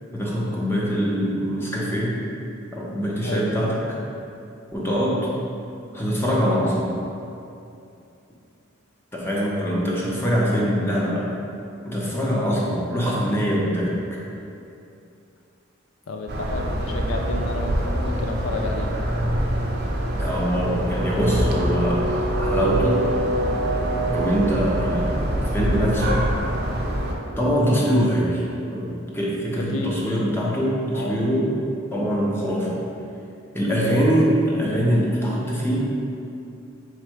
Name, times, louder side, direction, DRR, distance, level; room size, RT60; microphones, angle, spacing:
voice 1, 0.1-2.2 2.7-3.8 4.7-5.3 5.9-7.0 9.1-11.3 11.8-14.0 20.2-22.0 22.4-23.1 24.1-26.3 27.4-28.4 28.7-31.5 31.9-32.8 33.5-35.9, equal, 10° left, -5 dB, 0.7 m, -23 dB
voice 2, 16.1-18.9 29.7-29.9 30.9-31.2, left 2 dB, 80° left, 3 dB, 0.5 m, -30 dB
sound 1, 16.3-27.1, right 1 dB, 55° right, 0.5 m, -24 dB
3.6 x 3.2 x 4.5 m, 2.7 s
head